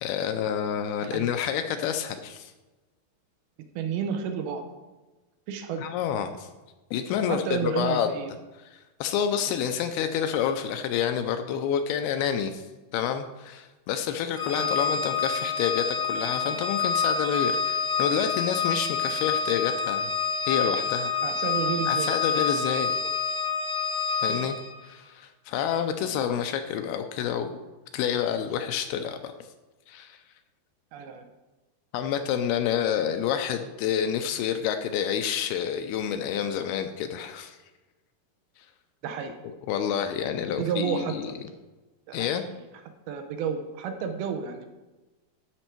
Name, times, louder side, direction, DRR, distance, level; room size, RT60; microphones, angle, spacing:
voice 1, 0.0-2.5 5.8-6.5 6.9-8.1 8.7-12.6 12.9-20.1 20.5-21.1 21.9-22.9 24.2-24.6 24.8-27.6 27.9-29.3 29.9-30.2 31.9-37.6 39.4-41.3 42.1-42.4, left 8 dB, 80° left, 8 dB, 2.4 m, -28 dB
voice 2, 3.8-4.6 5.5-5.8 7.3-8.3 14.6-14.7 21.2-22.1 30.9-31.2 39.0-39.3 40.6-41.3 42.1-42.3 43.1-44.7, right 7 dB, 75° right, 7 dB, 2.5 m, -31 dB
Organ, 14.3-24.8, left 5 dB, 40° left, 1.0 m, -27 dB
12.5 x 6.3 x 4.5 m, 1.2 s
omnidirectional pair, 4.8 m